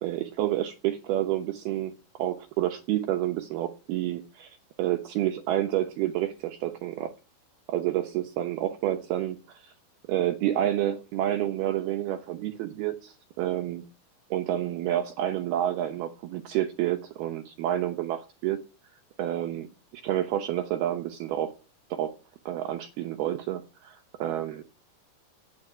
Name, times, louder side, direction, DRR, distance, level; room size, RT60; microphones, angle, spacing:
voice 1, 0.0-7.1 7.7-9.7 10.1-13.8 14.3-18.6 19.2-19.7 19.9-21.5 21.9-22.2 22.5-24.6, right 12 dB, 90° right, 2.2 m, -29 dB
9.5 x 9.4 x 9.7 m
omnidirectional pair, 5.8 m